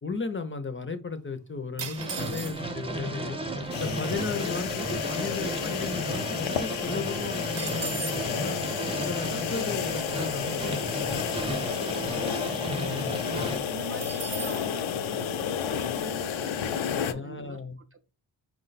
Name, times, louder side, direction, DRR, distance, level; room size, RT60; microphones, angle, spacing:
voice 1, 0.0-3.4 3.7-8.6 9.0-10.7 11.0-11.1 12.6-13.2 17.0-17.8, left 4 dB, 25° left, 0.5 m, -35 dB
sound 1, 1.8-2.9 3.7-3.8 4.0-4.3 4.7-6.2 6.5-6.6 6.9-8.3 14.0-14.7, right 5 dB, 65° right, 0.8 m, -38 dB
sound 2, 2.0-13.6, right 1 dB, 10° right, 0.8 m, -34 dB
sound 3, 3.7-17.1, left 8 dB, 85° left, 0.5 m, -31 dB
voice 2, 13.2-17.6 17.9-18.1, right 3 dB, 30° right, 0.4 m, -45 dB
4.7 x 2.1 x 3.9 m
wide cardioid pair, 85°, 46 cm